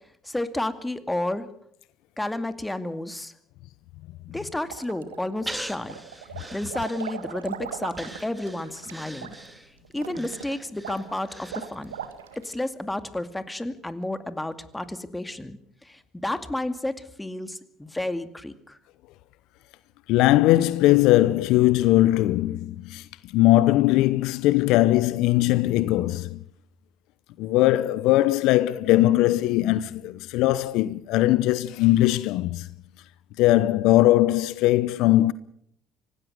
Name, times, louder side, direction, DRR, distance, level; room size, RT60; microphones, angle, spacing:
voice 1, 0.2-1.5 2.2-3.3 4.3-6.0 6.5-9.3 9.9-11.9 12.3-18.8, left 1 dB, 10° left, 2.3 m, -31 dB
sound 1, 4.6-5.5 5.8-12.5, right 9 dB, 90° right, 1.7 m, -39 dB
Breathing, 5.5-7.4 7.9-12.1 12.5-12.6, right 1 dB, 10° right, 3.0 m, -41 dB
voice 2, 20.1-23.0 23.3-26.4 27.4-32.7 33.4-35.3, left 16 dB, 70° left, 0.8 m, -20 dB
25.5 x 18.0 x 6.6 m
hypercardioid pair, 60°, 0 cm